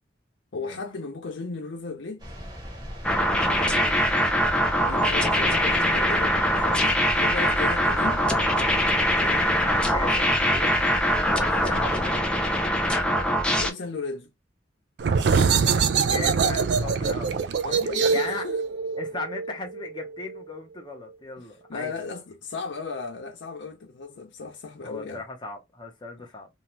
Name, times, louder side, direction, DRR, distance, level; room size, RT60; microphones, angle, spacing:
voice 1, 0.5-2.3 3.4-3.9 4.8-6.9 7.2-8.2 9.2-9.6 11.6-11.9 13.6-14.3 17.6-18.6 21.7-25.2, left 4 dB, 90° left, 0.6 m, -35 dB
sound 1, 2.2-12.1, equal, 20° right, 0.9 m, -39 dB
sound 2, 3.0-13.7, equal, 5° left, 0.4 m, -23 dB
voice 2, 9.9-10.8 11.6-12.5 15.4-17.3 17.6-18.5 19.0-21.9 24.8-26.5, left 3 dB, 25° left, 0.8 m, -37 dB
sound 3, 15.0-20.4, right 5 dB, 65° right, 0.3 m, -24 dB
2.7 x 2.3 x 3.0 m
head